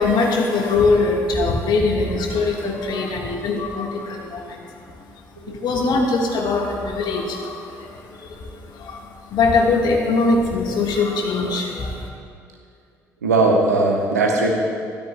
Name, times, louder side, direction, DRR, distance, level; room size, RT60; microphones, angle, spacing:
voice 1, 0.0-4.9 5.4-12.1, left 3 dB, 60° left, 1 dB, 1.5 m, -22 dB
voice 2, 13.2-14.5, right 2 dB, 90° right, 0 dB, 1.0 m, -18 dB
13.0 x 12.0 x 2.2 m, 2.3 s
hypercardioid pair, 50°, 8 cm